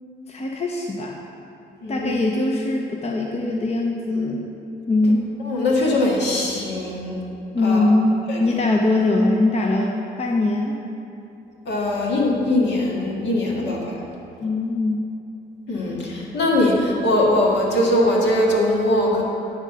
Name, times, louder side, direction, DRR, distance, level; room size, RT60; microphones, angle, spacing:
voice 1, 0.3-1.1 1.9-4.5 4.9-5.3 7.5-10.8 14.4-15.0, left 2 dB, 35° left, 0 dB, 0.8 m, -21 dB
voice 2, 1.8-2.1 5.5-7.2 7.6-7.9 8.3-8.4 11.7-14.0 15.7-19.2, left 1 dB, 65° left, -3 dB, 1.9 m, -21 dB
9.8 x 3.7 x 6.7 m, 2.8 s
supercardioid pair, 70°, 19 cm